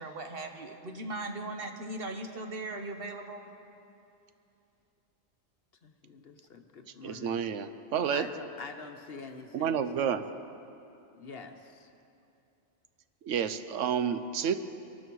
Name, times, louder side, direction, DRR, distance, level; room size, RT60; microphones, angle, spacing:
voice 1, 0.0-3.4, right 2 dB, 55° right, 4 dB, 1.2 m, -38 dB
voice 2, 5.8-7.4 8.1-9.8 10.1-10.2 11.1-11.9, left 4 dB, 55° left, 6 dB, 1.1 m, -45 dB
voice 3, 7.0-8.3 9.5-10.3 13.2-14.6, right 8 dB, 85° right, 11 dB, 1.0 m, -30 dB
22.5 x 12.5 x 4.7 m, 2.7 s
omnidirectional pair, 1.2 m